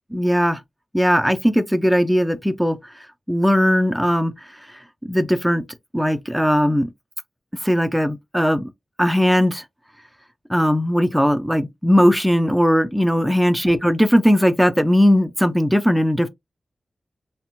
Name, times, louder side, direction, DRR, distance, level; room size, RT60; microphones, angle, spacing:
voice 1, 0.1-0.6 0.9-2.8 3.3-4.3 5.0-5.6 5.9-6.9 7.6-8.7 9.0-9.6 10.5-16.3, equal, ahead, 0.4 m, -18 dB
2.9 x 2.1 x 2.6 m
wide cardioid pair, 120°, 0 cm